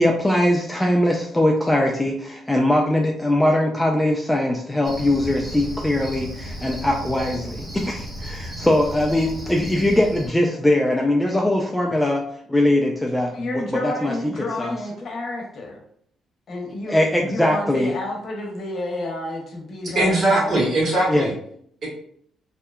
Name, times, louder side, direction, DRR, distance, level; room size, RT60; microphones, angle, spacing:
voice 1, 0.0-12.2 12.5-14.8 16.9-17.9 21.1-21.3, left 1 dB, 10° left, 0 dB, 0.3 m, -21 dB
Cricket, 4.8-10.3, equal, 25° right, 0.8 m, -34 dB
voice 2, 13.3-15.8 16.5-20.7, left 1 dB, 55° left, 0 dB, 0.8 m, -30 dB
voice 3, 19.8-21.3 21.8-21.9, right 1 dB, 55° right, -5 dB, 1.4 m, -20 dB
2.7 x 2.2 x 2.2 m, 0.65 s
cardioid pair, 90°, 0 cm